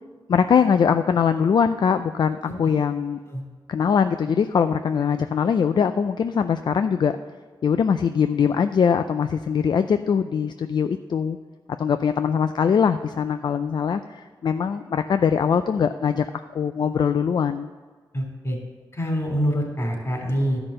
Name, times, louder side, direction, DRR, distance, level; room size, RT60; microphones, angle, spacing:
voice 1, 0.3-3.2 3.7-7.2 7.6-11.4 11.8-16.3 16.5-17.7, left 7 dB, 60° left, 10 dB, 0.4 m, -22 dB
voice 2, 18.1-18.6 18.9-20.6, equal, 35° left, 1 dB, 3.5 m, -25 dB
11.5 x 6.0 x 6.5 m, 1.5 s
cardioid pair, 65°, 9 cm